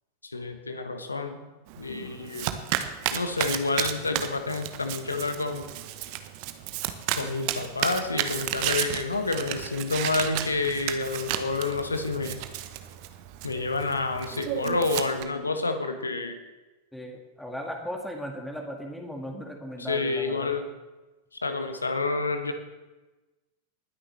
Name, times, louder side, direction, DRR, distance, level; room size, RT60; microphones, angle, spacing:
voice 1, 0.3-1.4 1.8-2.6 3.1-5.6 7.1-12.4 13.4-16.4 19.8-20.7 21.4-22.5, left 3 dB, 80° left, 7 dB, 1.3 m, -29 dB
Domestic sounds home sounds, 1.7-15.2, right 12 dB, 45° right, 0.9 m, -33 dB
voice 2, 16.9-20.5, equal, 5° left, 1 dB, 1.8 m, -37 dB
20.0 x 9.8 x 3.3 m, 1.1 s
figure-of-eight pair, 90°, 0 cm